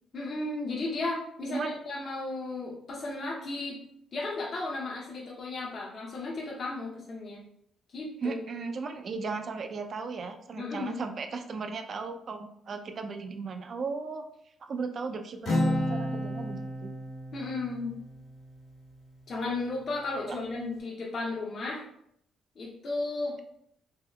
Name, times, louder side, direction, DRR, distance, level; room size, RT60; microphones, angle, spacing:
voice 1, 0.1-3.8 4.1-7.4 7.9-8.4 10.6-11.0 17.3-18.0 19.3-21.8 22.6-23.4, left 2 dB, 50° left, -4 dB, 0.6 m, -34 dB
voice 2, 1.5-1.8 8.2-14.2 14.6-16.9 20.2-20.4, right 4 dB, 50° right, 6 dB, 0.4 m, -36 dB
Acoustic guitar, 15.5-19.1, left 1 dB, 70° left, 1.2 m, -32 dB
3.5 x 2.8 x 2.2 m, 0.73 s
cardioid pair, 90°, 0 cm